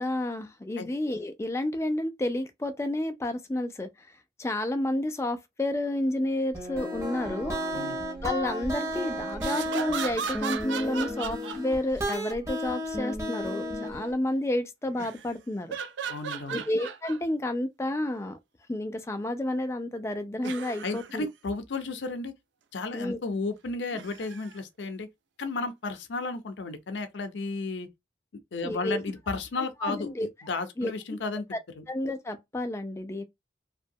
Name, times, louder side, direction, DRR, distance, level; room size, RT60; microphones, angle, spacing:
voice 1, 0.0-3.9 4.4-7.6 8.2-15.8 16.5-18.4 18.7-21.3 22.9-23.2 28.6-29.0 29.8-30.3 30.8-30.9 31.5-31.6 31.9-33.2, left 1 dB, 15° left, 0.3 m, -30 dB
sound 1, 6.5-14.1, equal, 15° right, 0.7 m, -33 dB
sound 2, 9.3-12.2 14.9-15.3 15.7-17.2 17.8-17.9 20.4-21.1 23.9-24.6 25.7-25.8, right 6 dB, 90° right, 0.4 m, -36 dB
voice 2, 16.1-16.6 20.8-22.3 22.7-25.1 25.4-27.9 28.5-31.4 31.7-31.8, left 3 dB, 85° left, 0.5 m, -33 dB
2.7 x 2.2 x 2.6 m
head